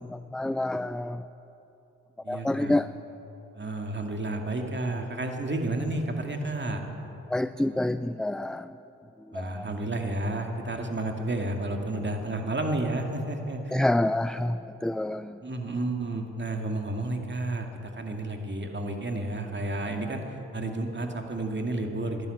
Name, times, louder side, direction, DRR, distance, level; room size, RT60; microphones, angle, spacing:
voice 1, 0.0-1.2 2.3-2.9 7.3-8.8 9.3-9.7 13.7-15.4, left 1 dB, ahead, 13 dB, 0.3 m, -28 dB
voice 2, 2.2-2.8 3.6-6.8 9.3-13.8 15.4-17.7 17.9-22.3, right 2 dB, 30° right, 3 dB, 2.3 m, -31 dB
11.5 x 11.0 x 9.3 m, 2.9 s
hypercardioid pair, 40°, 34 cm